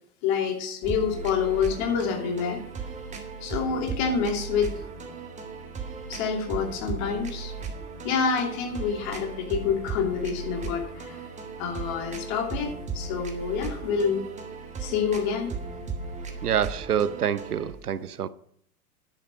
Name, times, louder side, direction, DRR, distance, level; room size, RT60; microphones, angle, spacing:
voice 1, 0.2-2.6 3.4-4.7 6.1-7.5 8.0-11.2 11.6-14.2 14.8-15.5, left 6 dB, 45° left, 2.8 m, -27 dB
sound 1, 0.8-17.7, right 4 dB, 15° right, 1.8 m, -37 dB
voice 2, 16.4-18.3, right 9 dB, 80° right, 0.7 m, -26 dB
11.0 x 8.2 x 6.0 m
figure-of-eight pair, 95°, 45 cm